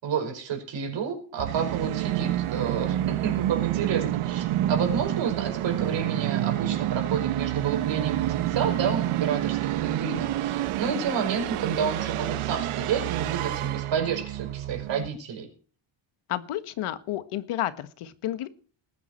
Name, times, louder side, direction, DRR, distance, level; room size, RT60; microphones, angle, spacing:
voice 1, 0.0-15.5, right 7 dB, 60° right, 5 dB, 5.3 m, -30 dB
Musical instrument, 1.4-15.1, right 13 dB, 80° right, 0.9 m, -28 dB
voice 2, 16.3-18.5, left 13 dB, 80° left, 12 dB, 1.5 m, -31 dB
20.0 x 9.5 x 4.5 m, 0.42 s
cardioid pair, 175°, 50 cm